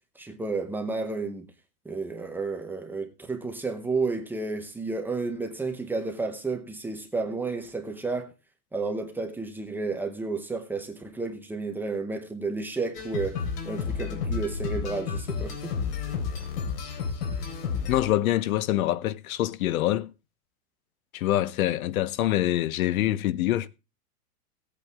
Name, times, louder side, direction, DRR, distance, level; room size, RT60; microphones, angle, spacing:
voice 1, 0.2-1.5 1.8-8.3 8.7-13.4 13.6-15.7, right 3 dB, 5° right, 0.8 m, -31 dB
sound 1, 12.9-18.0, left 6 dB, 90° left, 3.8 m, -31 dB
voice 2, 17.9-20.1 21.1-23.7, left 14 dB, 65° left, 0.8 m, -25 dB
17.0 x 8.4 x 3.4 m
supercardioid pair, 170°, 46 cm